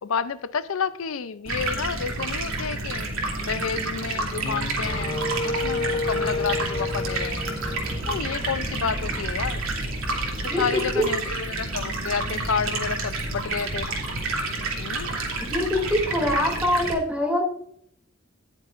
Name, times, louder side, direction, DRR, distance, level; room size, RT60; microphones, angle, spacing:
voice 1, 0.0-3.1 3.4-7.5 8.1-9.6 10.6-13.9 14.8-15.1, left 6 dB, 85° left, 0.5 m, -30 dB
Stream, 1.5-16.9, right 2 dB, 90° right, 2.9 m, -29 dB
sound 1, 4.0-11.9, equal, 30° right, 2.1 m, -39 dB
Wind instrument woodwind instrument, 4.4-8.6, left 3 dB, 25° left, 0.5 m, -31 dB
voice 2, 15.4-17.4, left 1 dB, 5° right, 2.7 m, -24 dB
18.5 x 7.2 x 2.5 m
head